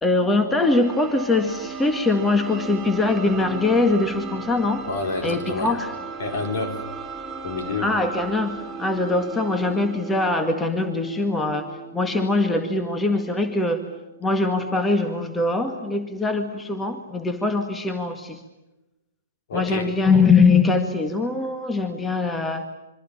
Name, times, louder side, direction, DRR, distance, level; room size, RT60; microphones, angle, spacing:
voice 1, 0.0-4.8 5.2-5.9 7.8-13.8 14.2-18.4 19.5-22.7, left 3 dB, 10° left, 7 dB, 1.8 m, -22 dB
sound 1, 0.6-16.2, right 5 dB, 10° right, 3.3 m, -37 dB
voice 2, 4.8-5.7 6.2-6.8 7.4-7.9 19.5-19.9, left 3 dB, 55° left, 5 dB, 4.3 m, -28 dB
27.0 x 24.0 x 8.7 m, 1.0 s
figure-of-eight pair, 115°, 0 cm